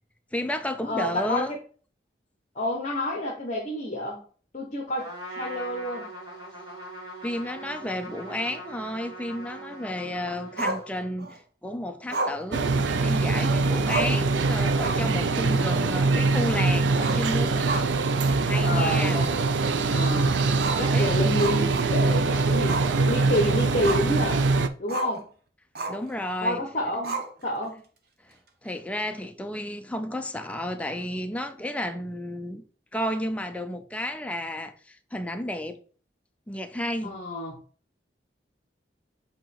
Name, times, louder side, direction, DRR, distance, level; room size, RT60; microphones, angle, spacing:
voice 1, 0.3-1.5 7.2-12.8 13.0-17.9 18.4-19.2 20.9-21.1 25.9-26.6 28.6-32.6 32.9-35.8 36.5-37.1, left 1 dB, 10° left, 0.5 m, -32 dB
voice 2, 0.8-1.6 2.5-4.2 4.5-6.1 14.0-14.4 15.3-15.7 18.6-19.5 19.9-20.4 20.8-24.5 24.8-25.2 26.4-27.8 37.0-37.6, left 1 dB, 45° left, 1.1 m, -29 dB
Trumpet, 5.0-11.2, right 1 dB, 25° right, 1.9 m, -41 dB
Growling, 10.6-11.4 12.1-13.3 13.6-13.7 13.9-14.3 14.7-15.2 15.5-15.6 16.9-18.2 18.5-18.6 19.1-19.2 20.5-22.2 22.7-22.9 23.3-24.2 24.9-25.2 25.7-26.1 27.0-27.7, right 2 dB, 60° right, 1.0 m, -32 dB
sound 1, 12.5-24.7, right 3 dB, 85° right, 0.5 m, -23 dB
7.9 x 3.0 x 4.3 m
head